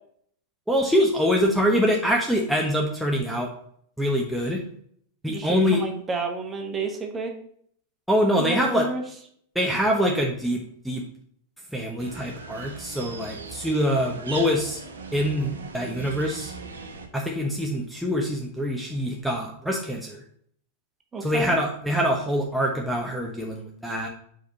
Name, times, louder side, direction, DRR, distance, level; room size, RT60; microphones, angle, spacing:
voice 1, 0.7-3.5 4.0-4.6 5.2-5.8 8.1-8.9 9.5-11.0 11.7-14.8 15.1-16.5 17.1-20.2 21.2-24.1, equal, ahead, -1 dB, 0.9 m, -24 dB
voice 2, 5.3-7.3 8.4-9.0 21.1-21.6, right 4 dB, 20° right, 4 dB, 1.3 m, -30 dB
sound 1, 12.0-17.1, right 4 dB, 80° right, 1.0 m, -39 dB
4.8 x 4.6 x 5.3 m, 0.64 s
hypercardioid pair, 100°, 0 cm